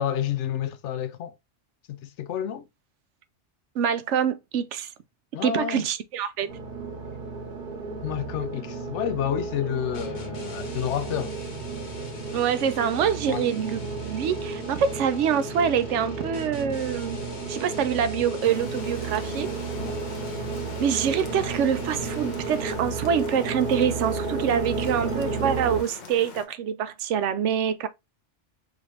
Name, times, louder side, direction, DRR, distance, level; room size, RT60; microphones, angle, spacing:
voice 1, 0.0-1.3 1.9-2.7 5.3-5.9 8.0-11.4 13.3-13.5 19.8-20.0, left 9 dB, 85° left, 0.9 m, -29 dB
voice 2, 3.7-4.9 5.4-6.5 12.3-17.2 17.5-19.5 20.8-27.9, right 8 dB, 85° right, 0.9 m, -25 dB
sound 1, 6.5-25.8, right 4 dB, 50° right, 1.0 m, -33 dB
sound 2, 9.9-23.0, left 1 dB, 65° left, 1.5 m, -43 dB
sound 3, 18.4-26.4, left 5 dB, 45° left, 0.8 m, -44 dB
5.0 x 2.6 x 3.2 m
omnidirectional pair, 1.2 m